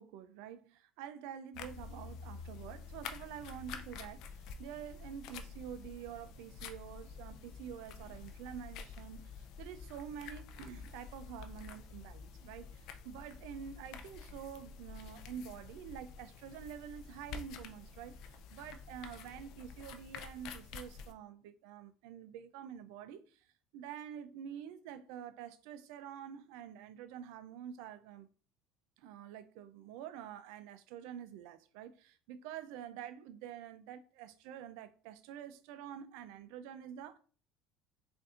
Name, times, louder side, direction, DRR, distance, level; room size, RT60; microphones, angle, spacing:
voice 1, 0.0-23.5 23.7-28.3 29.0-37.2, right 9 dB, 80° right, 0.3 m, -48 dB
sound 1, 1.5-21.1, left 5 dB, 65° left, 0.4 m, -49 dB
4.1 x 2.5 x 2.4 m
supercardioid pair, 90°, 0 cm